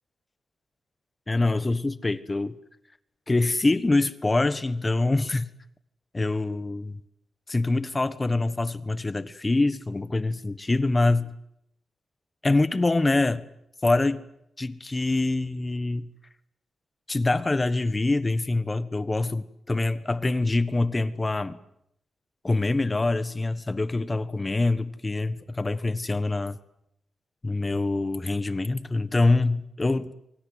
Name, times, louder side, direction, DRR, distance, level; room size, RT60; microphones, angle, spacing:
voice 1, 1.3-2.6 3.3-5.5 6.1-7.0 7.5-11.3 12.4-13.4 13.8-14.2 14.6-16.0 17.1-21.6 22.4-26.6 27.4-30.3, left 2 dB, 20° left, 1.4 m, -25 dB
27.5 x 24.5 x 8.2 m
wide cardioid pair, 175°, 0 cm